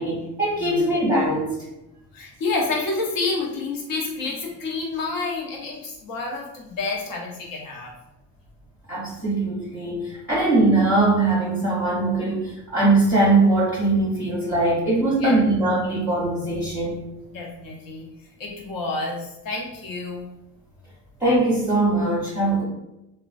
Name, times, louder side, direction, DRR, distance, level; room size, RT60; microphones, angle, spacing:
voice 1, 0.0-1.5 8.9-17.0 21.2-22.6, right 2 dB, 5° right, -8 dB, 1.0 m, -21 dB
voice 2, 0.6-0.9 2.1-7.9 15.2-15.5 17.3-18.1 18.4-20.3, left 3 dB, 50° left, -1 dB, 1.0 m, -29 dB
2.9 x 2.2 x 2.5 m, 0.90 s
supercardioid pair, 70°, 43 cm